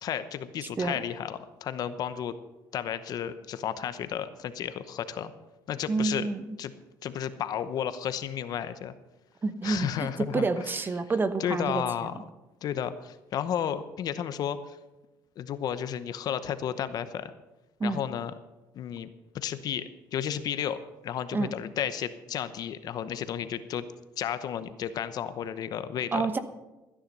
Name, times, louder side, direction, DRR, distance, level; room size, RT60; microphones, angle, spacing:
voice 1, 0.0-2.4 2.7-5.3 5.7-6.3 6.6-6.7 7.0-8.9 9.6-10.4 11.4-12.1 12.6-14.8 15.4-17.3 17.8-18.3 18.7-19.1 19.3-23.8 24.2-26.3, left 9 dB, 60° left, 12 dB, 0.9 m, -32 dB
voice 2, 5.9-6.6 9.4-12.2 17.8-18.0 21.3-21.5 26.1-26.4, right 3 dB, 25° right, 11 dB, 1.0 m, -29 dB
14.5 x 10.0 x 5.5 m, 1.1 s
cardioid pair, 100°, 8 cm